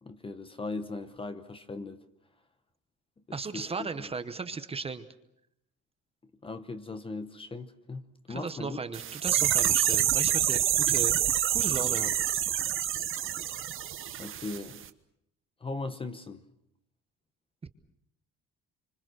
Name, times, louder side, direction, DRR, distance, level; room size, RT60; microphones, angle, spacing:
voice 1, 0.0-2.0 3.5-4.1 6.4-8.8 9.3-9.4 14.2-14.9 15.6-16.4, left 3 dB, 15° left, 0.9 m, -39 dB
voice 2, 3.3-5.1 8.3-11.2 11.5-12.1 17.6-17.7, right 4 dB, 20° right, 1.0 m, -36 dB
sound 1, 8.9-14.6 14.8-14.9, right 10 dB, 40° right, 1.1 m, -27 dB
27.0 x 25.5 x 6.3 m
cardioid pair, 175°, 31 cm